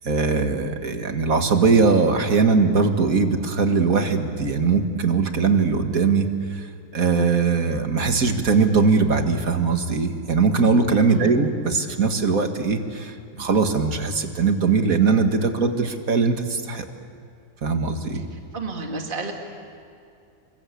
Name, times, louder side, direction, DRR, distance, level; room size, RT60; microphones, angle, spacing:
voice 1, 0.0-16.9 17.6-18.2, right 4 dB, 60° right, 6 dB, 2.3 m, -21 dB
voice 2, 18.1-19.3, right 3 dB, 35° right, 2 dB, 2.4 m, -32 dB
28.5 x 24.0 x 8.5 m, 2.5 s
omnidirectional pair, 1.6 m